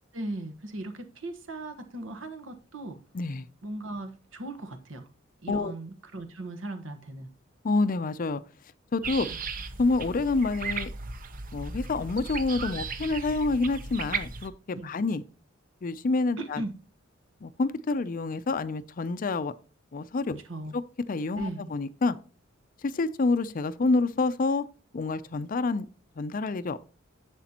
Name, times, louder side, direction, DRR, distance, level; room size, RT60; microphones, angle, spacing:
voice 1, 0.1-3.0 3.6-5.1 5.4-7.3 9.3-9.4 14.7-15.0 16.4-16.7 20.5-20.7 21.4-21.7, right 2 dB, 75° right, 1.3 m, -38 dB
voice 2, 3.1-3.5 5.5-5.7 7.6-8.4 8.9-9.3 9.8-10.9 11.5-15.2 15.8-16.6 17.4-19.5 19.9-20.4 21.1-22.2 22.8-24.7 24.9-25.8 26.2-26.8, left 3 dB, 45° left, 0.5 m, -27 dB
sound 1, 9.0-14.5, right 4 dB, 45° right, 0.7 m, -36 dB
10.0 x 7.5 x 2.9 m
head